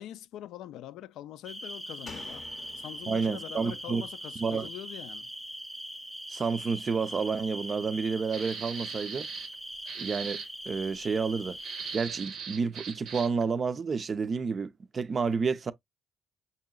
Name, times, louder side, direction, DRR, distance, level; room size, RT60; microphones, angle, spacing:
voice 1, 0.0-2.5 2.8-5.3, left 12 dB, 90° left, 0.3 m, -44 dB
sound 1, 1.5-12.0, equal, ahead, 0.7 m, -41 dB
Slam, 2.1-5.5 5.8-5.9, left 4 dB, 45° left, 0.6 m, -51 dB
voice 2, 3.1-4.0 4.4-4.7 6.3-9.3 10.0-11.6 11.9-15.7, right 5 dB, 40° right, 0.4 m, -30 dB
sound 2, 8.3-9.5 9.9-10.5 11.6-13.4, right 7 dB, 80° right, 0.7 m, -40 dB
5.4 x 2.8 x 2.3 m
cardioid pair, 90°, 0 cm